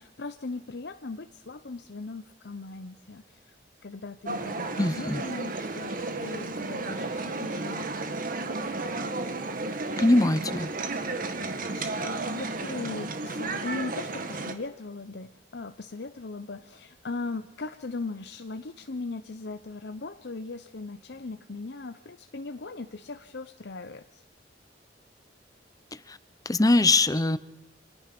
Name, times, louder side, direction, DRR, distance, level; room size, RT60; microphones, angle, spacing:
voice 1, 0.0-3.5 3.8-8.0 11.6-24.2, left 3 dB, 65° left, 9 dB, 0.8 m, -39 dB
sound 1, 4.3-14.5, right 3 dB, 50° right, 2.0 m, -33 dB
voice 2, 4.8-5.2 10.0-10.7 26.1-26.2 26.5-27.4, left 2 dB, 20° left, 15 dB, 0.9 m, -22 dB
29.0 x 25.5 x 6.1 m, 0.97 s
head